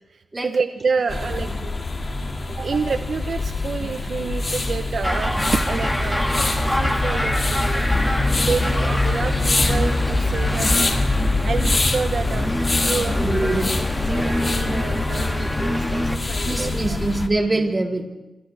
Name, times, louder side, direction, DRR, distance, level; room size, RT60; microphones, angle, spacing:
voice 1, 0.1-1.7 2.2-7.9 8.4-10.9 11.4-13.2 13.4-13.5 14.1-16.7, right 5 dB, 60° right, 8 dB, 0.8 m, -28 dB
voice 2, 1.0-1.6 2.7-2.8 3.7-4.0 10.1-10.7 12.3-12.4 12.8-13.8 16.4-18.1, right 2 dB, 25° right, 0 dB, 3.5 m, -27 dB
sound 1, 1.1-17.3, left 2 dB, 35° left, 2.2 m, -24 dB
sound 2, 1.4-16.4, right 4 dB, 80° right, 3.5 m, -43 dB
sound 3, 5.0-16.2, equal, 5° left, 1.8 m, -26 dB
28.0 x 28.0 x 3.4 m, 1.0 s
wide cardioid pair, 95°, 0 cm